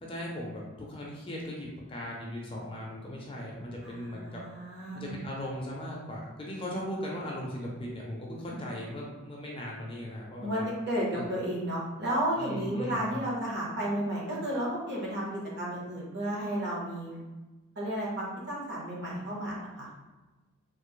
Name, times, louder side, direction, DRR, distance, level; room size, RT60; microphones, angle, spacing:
voice 1, 0.0-4.4 4.9-10.7 11.1-11.2 12.4-13.1, equal, 25° left, -3 dB, 0.5 m, -38 dB
voice 2, 3.8-5.1 10.4-17.2 17.7-19.9, right 1 dB, 50° right, -4 dB, 1.0 m, -33 dB
3.2 x 2.0 x 3.7 m, 1.2 s
head